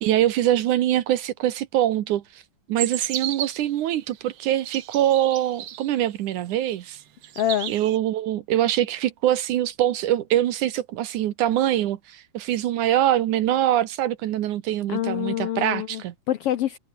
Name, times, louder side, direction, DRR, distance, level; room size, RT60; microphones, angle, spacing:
voice 1, 0.0-2.4 2.7-7.0 7.7-16.1, right 12 dB, 80° right, 2.6 m, -23 dB
sound 1, 2.8-3.7 4.4-5.9 6.5-7.0 7.2-8.0, right 11 dB, 60° right, 2.0 m, -33 dB
voice 2, 7.4-7.7 14.9-16.0 16.3-16.8, left 12 dB, 70° left, 1.4 m, -25 dB
omnidirectional pair, 3.5 m